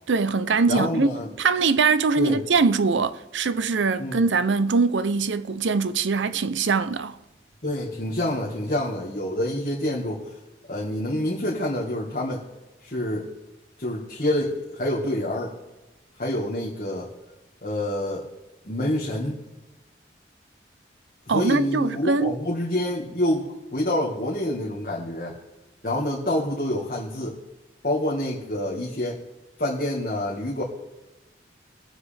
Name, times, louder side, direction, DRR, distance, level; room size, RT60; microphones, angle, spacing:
voice 1, 0.1-1.1 1.4-7.2 21.3-22.4, right 4 dB, 85° right, 0.6 m, -22 dB
voice 2, 0.7-1.3 2.2-2.4 4.0-4.2 7.6-10.4 10.7-12.4 12.8-13.3 13.8-15.5 16.2-17.1 17.6-18.2 18.6-19.4 21.3-25.3 25.8-27.4 27.8-29.2 29.6-30.6, left 1 dB, 45° left, 1.7 m, -27 dB
21.5 x 7.5 x 3.4 m
head